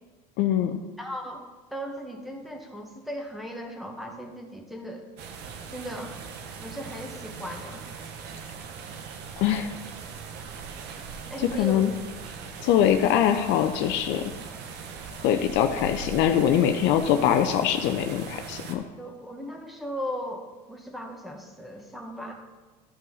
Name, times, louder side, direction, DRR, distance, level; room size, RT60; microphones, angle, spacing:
voice 1, 0.4-0.8 9.4-9.7 11.5-11.9 12.6-14.3 15.2-18.8, left 10 dB, 60° left, 6 dB, 0.6 m, -23 dB
voice 2, 1.0-1.4 1.7-5.1 5.7-6.3 6.6-8.0 11.3-11.9 19.0-22.3, equal, ahead, 2 dB, 1.7 m, -37 dB
sound 1, 5.2-18.8, right 5 dB, 55° right, 1.1 m, -40 dB
12.5 x 5.4 x 4.0 m, 1.3 s
hypercardioid pair, 75°, 21 cm